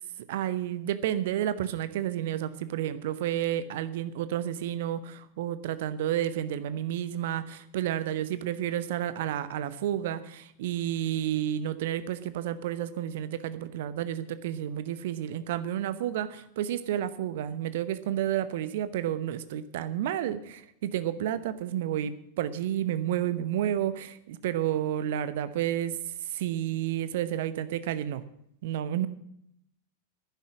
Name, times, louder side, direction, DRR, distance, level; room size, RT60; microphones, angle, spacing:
voice 1, 0.3-25.9 26.4-28.2 28.6-29.1, right 11 dB, 55° right, 14 dB, 0.9 m, -31 dB
11.0 x 10.5 x 7.4 m, 0.75 s
figure-of-eight pair, 90°, 0 cm